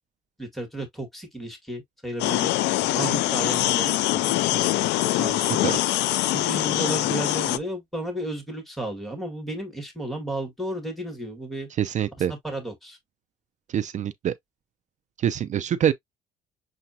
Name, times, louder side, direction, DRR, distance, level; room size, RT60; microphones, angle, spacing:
voice 1, 0.4-2.5 2.9-4.8 5.1-5.5 6.3-11.7 12.4-13.0, right 1 dB, ahead, 2.0 m, -33 dB
sound 1, 2.2-7.6, left 16 dB, 85° left, 0.4 m, -23 dB
voice 2, 5.4-5.8 11.8-12.3 13.7-14.3 15.2-15.9, right 10 dB, 45° right, 0.5 m, -25 dB
6.8 x 2.3 x 2.8 m
cardioid pair, 110°, 17 cm